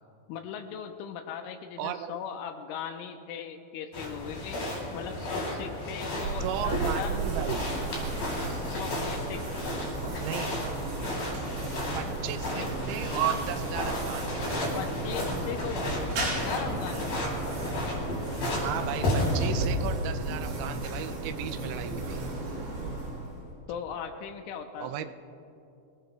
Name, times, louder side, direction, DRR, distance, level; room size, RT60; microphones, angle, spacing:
voice 1, 0.3-4.6 4.9-7.2 8.5-9.6 14.7-17.2 23.7-25.1, left 7 dB, 85° left, 5 dB, 3.0 m, -38 dB
voice 2, 1.8-2.2 6.4-7.7 10.2-10.6 12.0-14.6 18.6-22.2 24.8-25.1, right 11 dB, 85° right, 10 dB, 3.1 m, -35 dB
sound 1, 3.9-19.6, left 1 dB, 50° left, 4.7 m, -33 dB
sound 2, 6.2-23.6, right 2 dB, 70° right, 5.9 m, -35 dB
25.0 x 18.0 x 2.3 m, 2.7 s
omnidirectional pair, 5.8 m